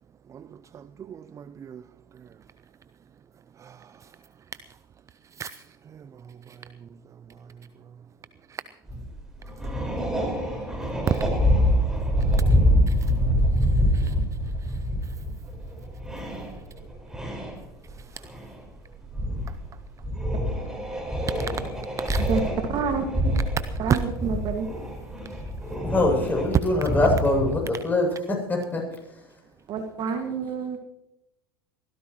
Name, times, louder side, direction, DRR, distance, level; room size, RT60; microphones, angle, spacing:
voice 1, 0.3-1.8 2.1-2.3 3.6-4.1 5.3-6.9 8.5-8.6 11.1-11.3 12.3-14.2 14.6-15.2 16.5-16.6 17.9-18.3 21.4-21.5 22.0-22.3 25.2-25.4, right 8 dB, 25° right, 15 dB, 0.5 m, -38 dB
sound 1, 8.9-9.1 9.4-18.0 18.2-18.6 19.1-19.6 20.0-27.5, equal, 5° right, 5.1 m, -25 dB
voice 2, 22.3-23.4 23.8-24.7 29.7-30.8, right 5 dB, 40° right, 5 dB, 1.9 m, -28 dB
voice 3, 25.8-29.4, left 2 dB, 15° left, 0 dB, 7.8 m, -24 dB
23.0 x 16.0 x 3.1 m, 0.87 s
hypercardioid pair, 85°, 12 cm